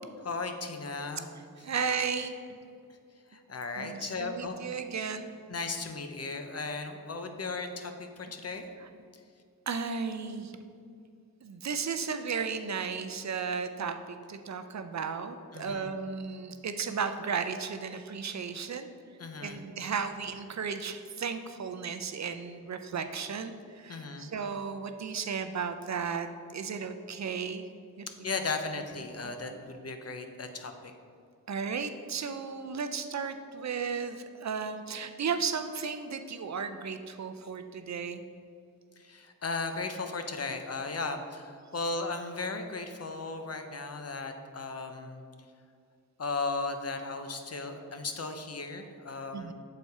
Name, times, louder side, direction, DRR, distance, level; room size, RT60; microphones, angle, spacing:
voice 1, 0.2-1.3 3.3-4.6 5.5-8.7 15.5-15.9 19.2-19.6 23.9-24.3 28.2-30.9 39.0-45.2 46.2-49.5, left 3 dB, 45° left, 6 dB, 0.7 m, -36 dB
voice 2, 1.6-2.3 3.8-5.3 8.8-8.9 9.7-10.6 11.4-18.9 19.4-27.7 28.0-28.1 29.2-29.3 31.5-38.2 49.3-49.5, right 6 dB, 50° right, 8 dB, 0.5 m, -34 dB
6.8 x 4.2 x 4.7 m, 2.3 s
cardioid pair, 50°, 36 cm